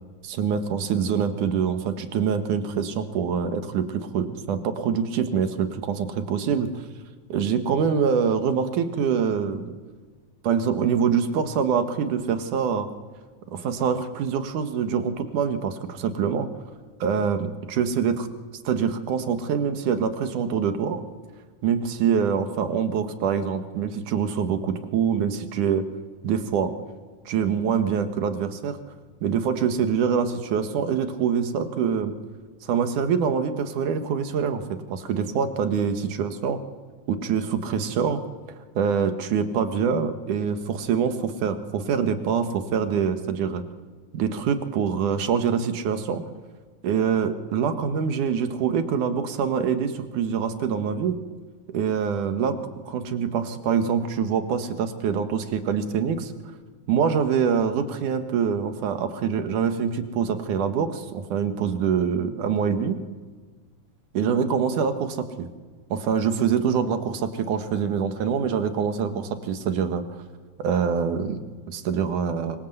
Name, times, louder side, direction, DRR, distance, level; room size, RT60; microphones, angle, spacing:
voice 1, 0.2-6.7 7.3-9.7 10.4-12.9 13.5-16.5 17.0-18.3 18.6-21.0 21.6-25.9 26.2-26.7 27.3-28.8 29.2-32.2 32.6-34.6 34.9-36.6 37.1-38.2 38.8-43.6 44.1-46.2 46.8-51.2 51.7-56.3 56.9-63.0 64.1-65.5 65.9-70.0 70.6-72.6, right 7 dB, 80° right, 8 dB, 3.1 m, -25 dB
25.0 x 23.5 x 8.0 m, 1.4 s
omnidirectional pair, 3.5 m